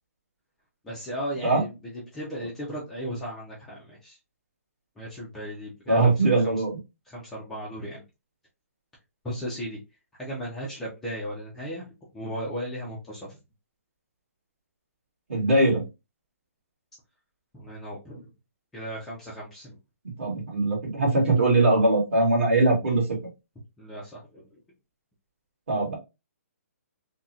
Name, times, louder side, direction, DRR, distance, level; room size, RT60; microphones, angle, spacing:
voice 1, 0.8-1.7 2.1-4.2 5.0-6.6 7.1-8.0 9.2-9.8 10.2-11.8 12.1-13.3 17.5-18.3 18.7-19.8 23.8-24.4, equal, 5° left, -7 dB, 0.3 m, -36 dB
voice 2, 5.9-6.8 15.3-15.8 20.2-23.2 25.7-26.0, right 2 dB, 50° right, -3 dB, 1.7 m, -21 dB
3.6 x 2.0 x 2.6 m, 0.26 s
hypercardioid pair, 175°, 8 cm